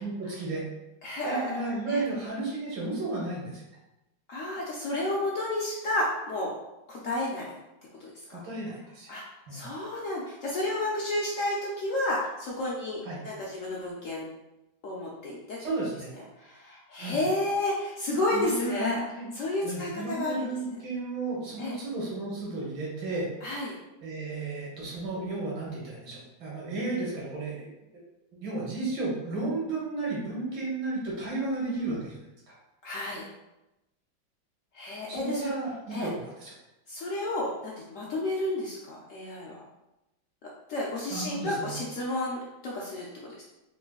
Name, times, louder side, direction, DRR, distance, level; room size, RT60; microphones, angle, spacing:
voice 1, 0.0-0.6 1.2-3.6 8.3-9.1 9.5-9.7 13.0-13.2 15.6-16.1 17.0-17.2 18.3-19.3 19.6-23.3 24.0-27.7 28.4-32.2 32.5-32.6 35.1-36.5 41.1-41.8, right 2 dB, 75° right, -4 dB, 2.0 m, -33 dB
voice 2, 1.0-1.6 1.9-2.0 4.3-6.5 6.9-7.5 8.3-8.4 9.1-9.2 9.5-14.3 14.8-15.6 16.4-19.0 19.3-20.4 21.6-21.8 23.4-23.7 32.8-33.2 34.7-35.5 35.9-36.1 36.9-39.6 40.7-43.4, left 1 dB, 75° left, -4 dB, 0.7 m, -31 dB
3.9 x 3.7 x 2.3 m, 0.95 s
omnidirectional pair, 2.1 m